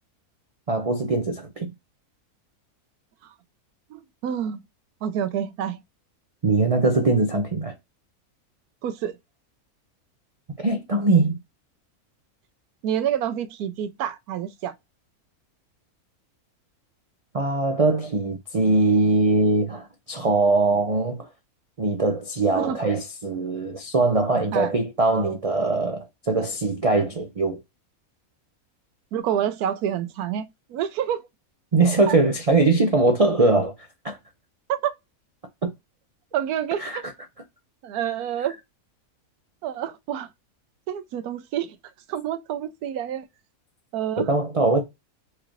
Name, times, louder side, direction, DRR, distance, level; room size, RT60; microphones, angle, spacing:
voice 1, 0.7-1.7 6.4-7.7 10.6-11.4 17.3-21.3 21.8-27.6 31.7-33.7 34.0-34.2 35.6-35.7 36.8-37.0 44.2-44.8, right 3 dB, 60° right, 0.3 m, -21 dB
voice 2, 3.9-4.6 5.0-5.8 8.8-9.1 12.8-14.7 22.6-22.8 24.5-24.7 29.1-31.2 32.1-32.2 34.7-34.9 36.3-37.0 37.8-38.5 39.6-40.3 40.9-41.8 42.1-43.3 43.9-44.3, right 9 dB, 85° right, 1.1 m, -28 dB
4.6 x 2.4 x 3.0 m
omnidirectional pair, 1.6 m